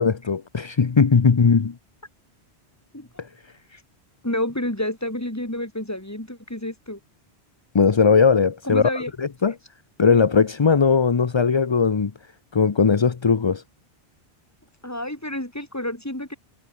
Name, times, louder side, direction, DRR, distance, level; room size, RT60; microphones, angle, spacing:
voice 1, 0.0-1.7 3.2-3.3 7.7-9.5 10.0-12.1 12.5-13.6, left 5 dB, 30° left, 0.6 m, -19 dB
voice 2, 4.2-7.0 8.6-9.1 14.8-16.4, left 1 dB, 15° left, 3.0 m, -29 dB
omnidirectional pair, 1.1 m